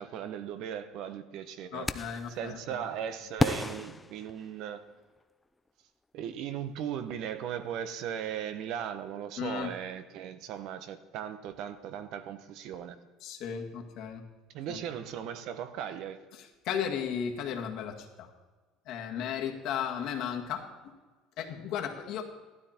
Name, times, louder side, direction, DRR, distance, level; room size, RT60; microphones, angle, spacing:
voice 1, 0.0-1.9 2.3-4.8 6.1-13.0 14.5-16.2, right 9 dB, 60° right, 11 dB, 1.0 m, -37 dB
voice 2, 1.7-2.8 9.4-9.7 13.2-14.2 14.7-14.8 16.3-18.3 18.9-20.9 21.4-22.2, left 8 dB, 55° left, 3 dB, 1.8 m, -35 dB
sound 1, 1.9-2.3 3.4-4.9, left 2 dB, 10° left, 0.5 m, -32 dB
14.5 x 12.5 x 4.4 m, 1.3 s
cardioid pair, 155°, 0 cm